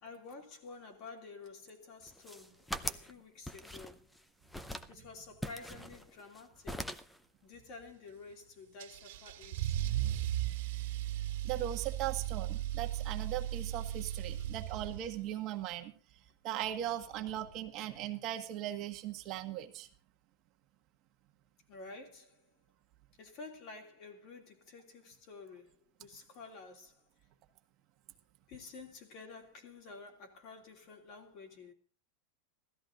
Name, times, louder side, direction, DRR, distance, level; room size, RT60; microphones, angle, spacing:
voice 1, 0.0-4.0 4.9-7.0 7.4-9.8 21.7-22.5 23.2-27.0 28.5-31.7, left 4 dB, 45° left, 3.1 m, -51 dB
sound 1, 2.1-3.1 3.5-4.2 4.5-4.9 5.4-6.4 6.7-7.2, equal, 5° left, 0.6 m, -41 dB
Car / Engine starting / Accelerating revving vroom, 8.8-15.3, right 12 dB, 65° right, 2.0 m, -36 dB
voice 2, 11.4-15.9 16.4-19.9, right 12 dB, 40° right, 1.4 m, -38 dB
16.0 x 13.5 x 3.9 m
supercardioid pair, 150°, 0 cm